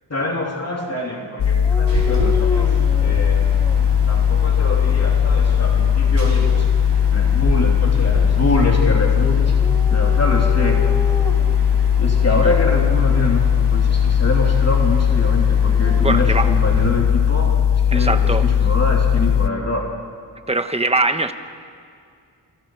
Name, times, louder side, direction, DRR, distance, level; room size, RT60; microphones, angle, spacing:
voice 1, 0.1-3.6 4.1-6.6 7.1-9.5 9.9-10.8 12.0-19.9, left 2 dB, 35° left, -1 dB, 3.3 m, -25 dB
sound 1, 1.4-19.5, left 8 dB, 70° left, 0.8 m, -17 dB
Dog, 1.6-3.8 4.5-5.2 9.3-11.7 12.4-12.9 15.5-16.8, equal, 5° left, 2.4 m, -32 dB
sound 2, 1.9-16.9, right 3 dB, 75° right, 4.2 m, -31 dB
voice 2, 16.0-16.5 17.9-18.5 20.5-21.3, right 2 dB, 15° right, 8 dB, 1.3 m, -21 dB
28.5 x 24.5 x 4.8 m, 2.3 s
wide cardioid pair, 75°, 43 cm